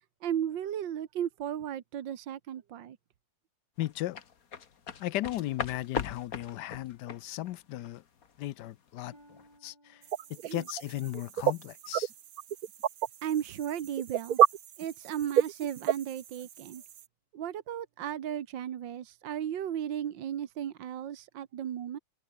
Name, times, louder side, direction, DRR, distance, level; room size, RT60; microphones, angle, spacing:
voice 1, 0.2-3.0 10.4-10.6 13.2-14.4 14.8-16.8 17.3-22.0, right 10 dB, 75° right, 1.9 m, -35 dB
voice 2, 3.8-4.2 5.0-8.0 8.4-10.0 10.3-12.1, left 15 dB, 70° left, 1.1 m, -36 dB
sound 1, 3.8-9.0 9.4-9.6, left 6 dB, 50° left, 1.9 m, -39 dB
Harp, 9.1-12.9 13.4-13.8 14.4-14.6, right 1 dB, 10° right, 7.5 m, -64 dB
sound 2, 10.0-17.0, right 10 dB, 55° right, 1.2 m, -30 dB
omnidirectional pair, 2.1 m